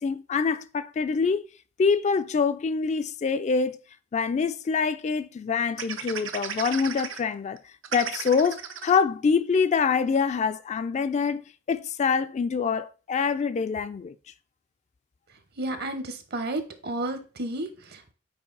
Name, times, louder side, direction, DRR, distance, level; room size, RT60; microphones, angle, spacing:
voice 1, 0.0-1.5 1.8-3.8 4.1-7.6 7.9-11.4 11.7-14.2, left 5 dB, 35° left, 0.3 m, -25 dB
sound 1, 5.8-7.2 7.6-7.7 7.8-9.0 9.6-9.7 9.9-10.2, right 7 dB, 85° right, 0.7 m, -34 dB
voice 2, 15.6-18.1, right 2 dB, 55° right, 0.9 m, -32 dB
5.4 x 4.6 x 3.9 m
head